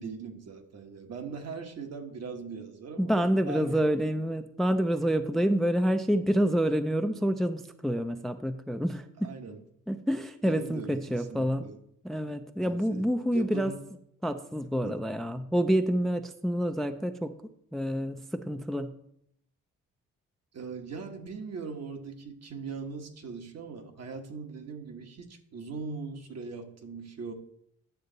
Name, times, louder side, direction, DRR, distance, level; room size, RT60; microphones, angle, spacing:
voice 1, 0.0-3.9 9.2-9.6 10.4-11.8 12.6-13.1 13.3-13.8 14.8-15.0 20.5-27.3, right 5 dB, 55° right, 4 dB, 1.4 m, -40 dB
voice 2, 3.0-9.3 9.9-11.6 12.0-13.7 14.2-17.3 17.7-18.9, equal, ahead, 9 dB, 0.4 m, -28 dB
9.6 x 6.5 x 4.0 m, 0.72 s
cardioid pair, 90°, 30 cm